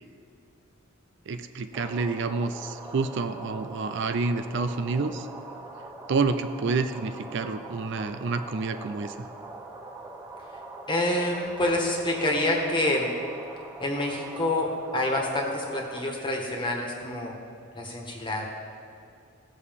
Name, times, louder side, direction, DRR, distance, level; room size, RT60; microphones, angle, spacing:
voice 1, 1.3-5.3 6.1-9.3, right 4 dB, 60° right, 9 dB, 0.4 m, -28 dB
sound 1, 1.7-16.0, right 2 dB, 15° right, 0.8 m, -43 dB
voice 2, 10.9-13.1 13.8-17.3 17.7-18.4, left 1 dB, 25° left, -1 dB, 1.5 m, -27 dB
16.5 x 6.5 x 3.6 m, 2.5 s
head